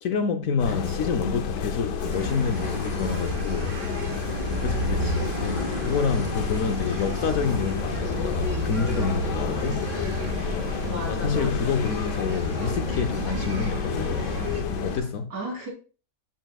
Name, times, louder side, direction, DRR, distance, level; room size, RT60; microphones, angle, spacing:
voice 1, 0.0-3.8 4.6-9.9 11.1-14.3 14.8-15.3, left 5 dB, 65° left, 1.0 m, -28 dB
sound 1, 0.6-15.0, left 6 dB, 85° left, 1.4 m, -30 dB
voice 2, 0.7-1.2 4.8-5.9 10.8-11.9 15.3-15.7, right 1 dB, 80° right, 3.8 m, -37 dB
sound 2, 2.0-14.6, right 4 dB, 50° right, 1.3 m, -35 dB
sound 3, 2.1-15.1, equal, 30° left, 2.0 m, -38 dB
12.5 x 5.7 x 2.3 m
omnidirectional pair, 1.8 m